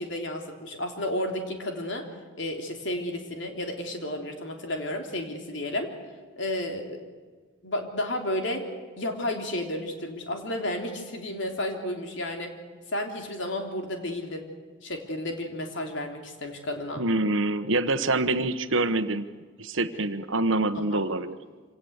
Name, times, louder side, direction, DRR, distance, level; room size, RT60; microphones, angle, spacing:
voice 1, 0.0-2.1 2.4-5.9 6.4-7.0 7.6-8.7 9.0-12.5 12.9-14.4 14.8-17.0 20.9-21.1, left 1 dB, 65° left, 3 dB, 3.4 m, -32 dB
voice 2, 17.0-19.3 19.6-21.4, right 2 dB, 75° right, 11 dB, 1.2 m, -26 dB
26.0 x 18.0 x 8.2 m, 1.5 s
head